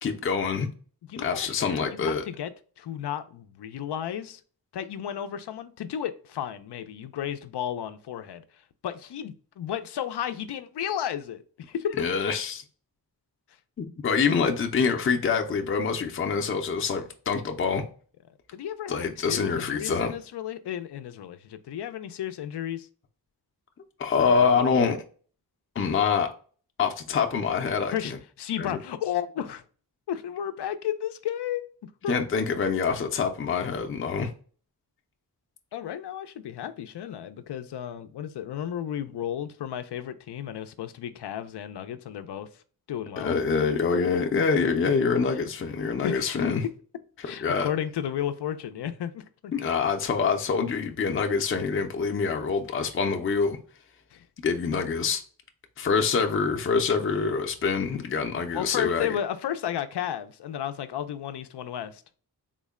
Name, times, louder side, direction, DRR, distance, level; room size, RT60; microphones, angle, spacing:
voice 1, 0.0-0.7 1.2-2.2 12.0-12.6 13.8-17.8 18.9-20.1 24.0-25.0 25.8-26.3 26.8-28.2 28.6-28.8 32.1-34.3 43.2-46.6 47.4-47.7 49.5-53.6 54.4-55.2 55.8-59.2, left 5 dB, 35° left, 0.5 m, -25 dB
voice 2, 1.1-2.5 2.8-4.4 4.7-8.4 8.8-12.0 18.5-22.9 24.2-25.0 27.9-29.6 30.1-31.6 32.0-32.2 35.7-42.5 42.9-43.4 46.0-46.4 47.2-49.7 54.1-54.2 58.5-62.0, left 10 dB, 90° left, 0.5 m, -33 dB
3.7 x 2.1 x 3.5 m
wide cardioid pair, 120°, 40 cm